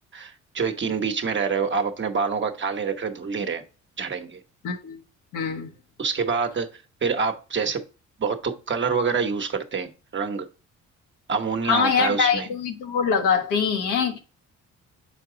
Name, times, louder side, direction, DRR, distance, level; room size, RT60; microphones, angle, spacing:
voice 1, 0.1-3.6 4.0-4.4 6.0-6.7 7.0-7.8 8.2-10.5 11.3-12.5, right 5 dB, 40° right, 1.1 m, -26 dB
voice 2, 4.6-5.0 5.3-5.7 11.6-14.2, left 6 dB, 90° left, 1.4 m, -23 dB
5.8 x 4.7 x 3.8 m
cardioid pair, 90°, 30 cm